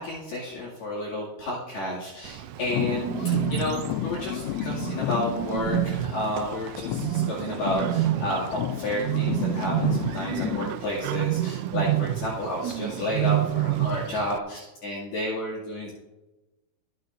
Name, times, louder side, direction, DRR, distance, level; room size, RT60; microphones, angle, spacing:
voice 1, 0.0-15.9, left 1 dB, 55° left, -5 dB, 3.9 m, -31 dB
Bird, 2.2-14.4, right 15 dB, 85° right, 2.8 m, -29 dB
sound 1, 2.6-6.5 6.8-10.8, left 12 dB, 80° left, 3.0 m, -32 dB
25.5 x 9.2 x 2.6 m, 1.0 s
omnidirectional pair, 6.0 m